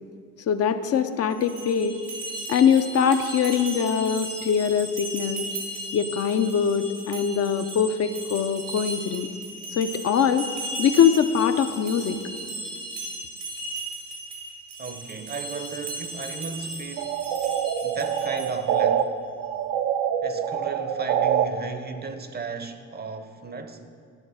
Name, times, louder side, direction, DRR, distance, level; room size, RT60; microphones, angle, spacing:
voice 1, 0.5-2.0 2.5-5.5 5.9-9.3 9.7-10.5 10.8-12.2, left 7 dB, 55° left, 0.5 m, -22 dB
sound 1, 1.3-18.8, right 2 dB, 90° right, 2.0 m, -36 dB
voice 2, 14.8-17.2 17.8-19.1 20.2-23.9, right 4 dB, 35° right, 0.6 m, -35 dB
sound 2, 17.0-19.0 19.4-21.5, right 9 dB, 75° right, 0.5 m, -25 dB
10.5 x 3.9 x 6.2 m
cardioid pair, 90°, 30 cm